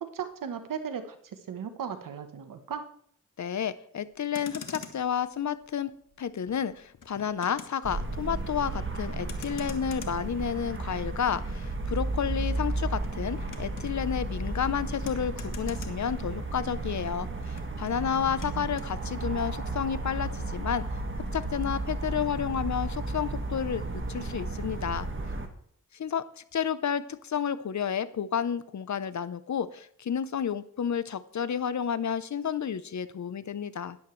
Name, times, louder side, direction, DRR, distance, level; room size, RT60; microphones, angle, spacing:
voice 1, 0.0-2.9 17.9-18.7, right 7 dB, 90° right, 8 dB, 1.2 m, -37 dB
voice 2, 3.4-5.9 6.2-20.9 21.3-25.1 25.9-34.0, left 8 dB, 60° left, 15 dB, 0.8 m, -31 dB
Motor vehicle (road), 4.1-16.8 17.0-18.9, left 6 dB, 80° left, 1.4 m, -48 dB
sound 1, 7.8-25.5, right 2 dB, 40° right, 1.8 m, -33 dB
13.0 x 10.5 x 3.2 m, 0.63 s
cardioid pair, 55°, 32 cm